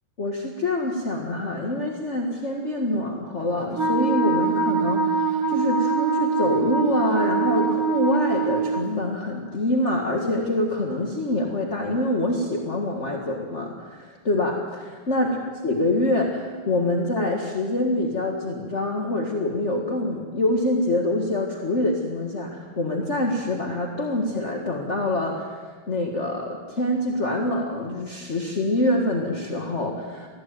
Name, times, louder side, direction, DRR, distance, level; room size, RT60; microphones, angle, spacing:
voice 1, 0.2-15.4 15.6-25.6 25.9-30.3, left 1 dB, 35° left, 0 dB, 2.0 m, -25 dB
Wind instrument woodwind instrument, 3.7-8.9, right 5 dB, 35° right, 1.6 m, -23 dB
20.5 x 15.0 x 9.3 m, 1.5 s
omnidirectional pair, 2.3 m